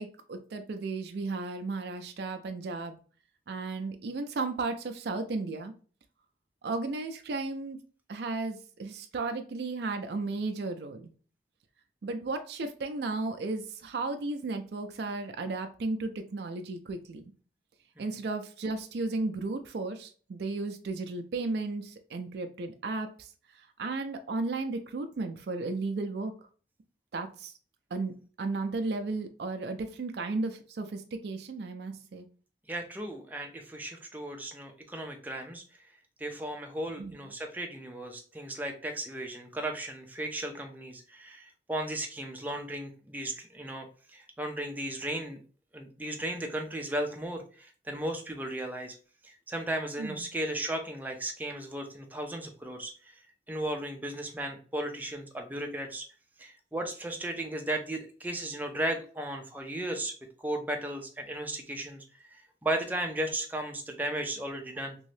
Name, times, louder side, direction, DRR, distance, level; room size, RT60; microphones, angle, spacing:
voice 1, 0.0-3.0 3.5-5.7 6.6-7.8 8.1-11.1 12.0-17.2 18.0-23.3 23.8-26.3 27.1-27.5 27.9-32.3 37.0-37.1 50.0-50.3, right 3 dB, 65° right, 6 dB, 0.4 m, -34 dB
voice 2, 32.7-35.6 36.2-45.4 45.7-49.0 49.2-53.2 53.5-56.1 56.4-65.0, right 1 dB, 10° right, 3 dB, 0.5 m, -35 dB
3.0 x 2.7 x 3.2 m, 0.40 s
head